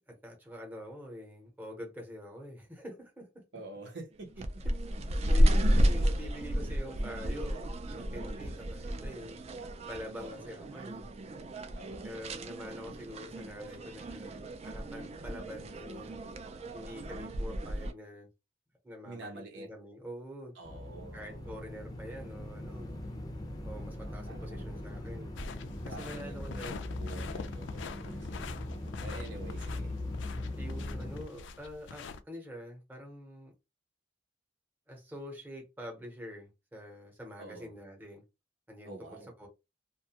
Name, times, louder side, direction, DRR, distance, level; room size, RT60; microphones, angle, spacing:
voice 1, 0.0-3.4 4.6-4.9 5.3-9.4 9.9-11.1 12.0-16.2 16.7-18.3 18.8-20.5 21.1-22.9 23.6-25.3 25.8-26.8 30.6-33.5 34.9-38.2 38.7-39.5, equal, 10° right, 0.8 m, -46 dB
voice 2, 3.5-4.6 10.2-10.8 11.7-12.4 19.0-19.7 20.5-21.6 24.0-24.8 25.9-30.0 37.4-37.7 38.8-39.3, right 2 dB, 75° right, 0.8 m, -48 dB
sound 1, 4.3-17.9, equal, 35° right, 0.3 m, -32 dB
sound 2, 20.6-31.2, left 1 dB, 20° left, 0.5 m, -40 dB
sound 3, 25.4-32.2, left 5 dB, 85° left, 0.4 m, -45 dB
2.5 x 2.2 x 2.8 m
head